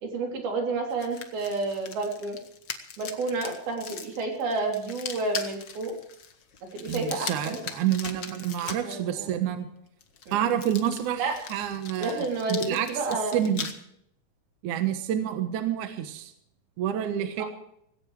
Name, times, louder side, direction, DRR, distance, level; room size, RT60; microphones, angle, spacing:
voice 1, 0.0-2.4 3.0-5.9 6.6-7.6 8.6-9.3 10.3-10.4 11.2-11.4 12.0-13.5 17.4-17.5, right 3 dB, 85° right, 1 dB, 5.3 m, -30 dB
sound 1, 0.9-9.0 10.0-13.7, left 6 dB, 65° left, 1.1 m, -40 dB
voice 2, 6.9-9.7 10.3-11.2 11.5-12.9 13.3-13.7 14.6-16.3 16.8-17.4, right 10 dB, 65° right, 7 dB, 2.5 m, -28 dB
18.0 x 17.0 x 3.3 m, 0.73 s
omnidirectional pair, 4.2 m